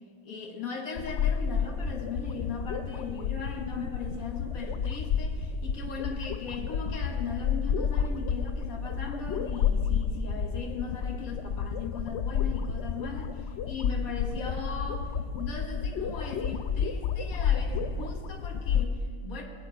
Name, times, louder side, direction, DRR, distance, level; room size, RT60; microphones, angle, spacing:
voice 1, 0.2-15.1 15.4-19.4, left 5 dB, 80° left, 1 dB, 1.8 m, -38 dB
sound 1, 1.0-18.9, left 7 dB, 65° left, 0.8 m, -30 dB
23.0 x 8.7 x 3.8 m, 2.1 s
omnidirectional pair, 1.5 m